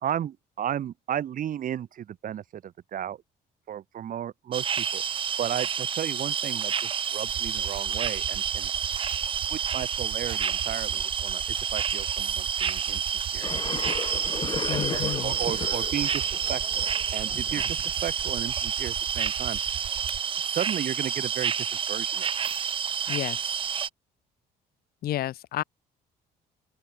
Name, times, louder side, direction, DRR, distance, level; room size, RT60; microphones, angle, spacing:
voice 1, 0.0-3.2 3.7-8.7 9.5-13.0 13.3-13.8 14.7-16.2 16.5-19.6 20.5-22.3, right 10 dB, 55° right, 2.9 m, -34 dB
sound 1, 4.5-23.9, right 7 dB, 30° right, 0.5 m, -29 dB
sound 2, 7.3-20.2, right 14 dB, 70° right, 3.1 m, -40 dB
sound 3, 13.4-18.4, left 6 dB, 30° left, 0.7 m, -36 dB
voice 2, 14.7-15.4 23.1-23.4 25.0-25.6, left 13 dB, 65° left, 1.3 m, -31 dB
open air
cardioid pair, 110°, 17 cm